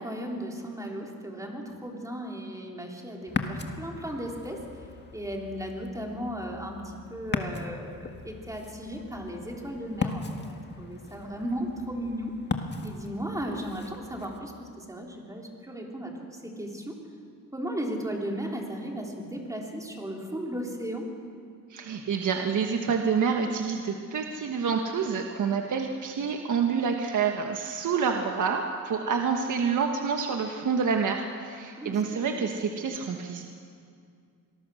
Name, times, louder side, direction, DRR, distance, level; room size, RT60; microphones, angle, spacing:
voice 1, 0.0-4.6 5.1-12.3 12.8-16.1 16.4-17.0 17.5-21.1 31.8-32.4, equal, 10° right, 0 dB, 3.6 m, -36 dB
Ocean, 3.3-14.4, left 4 dB, 30° left, 1.6 m, -38 dB
voice 2, 21.7-33.5, right 6 dB, 55° right, 3 dB, 1.4 m, -28 dB
25.5 x 20.5 x 6.4 m, 2.3 s
cardioid pair, 120°, 35 cm